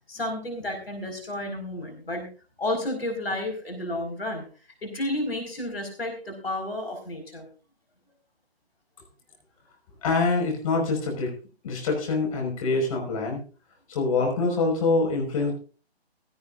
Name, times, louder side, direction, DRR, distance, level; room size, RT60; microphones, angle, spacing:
voice 1, 0.1-2.3 2.6-4.4 4.8-7.5, left 1 dB, 65° left, 5 dB, 5.0 m, -31 dB
voice 2, 10.0-11.3 11.6-13.4 13.9-15.5, left 3 dB, 35° left, 1 dB, 5.2 m, -25 dB
16.5 x 15.5 x 2.5 m, 0.36 s
figure-of-eight pair, 145°, 32 cm